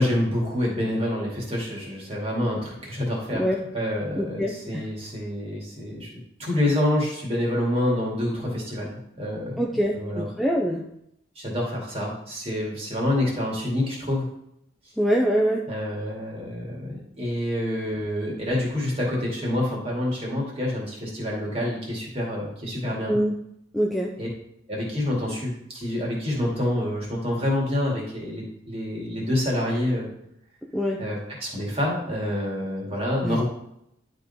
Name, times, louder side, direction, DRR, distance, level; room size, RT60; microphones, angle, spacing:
voice 1, 0.0-3.4 3.7-6.1 6.4-10.3 11.4-14.3 15.7-23.2 24.2-24.3 24.7-30.1 31.0-33.4, left 1 dB, 30° right, -3 dB, 2.2 m, -27 dB
voice 2, 4.2-4.8 9.6-10.8 15.0-15.6 23.1-23.4 23.7-24.1 30.7-31.0 33.2-33.4, equal, ahead, -2 dB, 0.5 m, -24 dB
11.0 x 3.8 x 4.1 m, 0.77 s
head